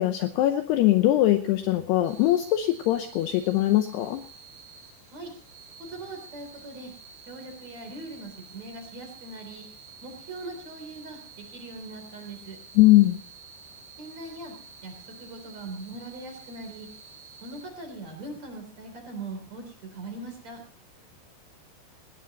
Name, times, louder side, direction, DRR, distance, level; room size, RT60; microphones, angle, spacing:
voice 1, 0.0-4.2 12.8-13.2, left 15 dB, 75° left, 7 dB, 2.5 m, -21 dB
sound 1, 2.0-17.6, right 5 dB, 90° right, 6.5 m, -50 dB
voice 2, 5.9-6.9 7.3-9.6 10.0-12.6 14.0-14.5 14.8-14.9 15.2-16.9 17.4-20.6, right 2 dB, 40° right, 5 dB, 4.2 m, -40 dB
20.0 x 18.0 x 3.0 m, 0.40 s
omnidirectional pair, 5.6 m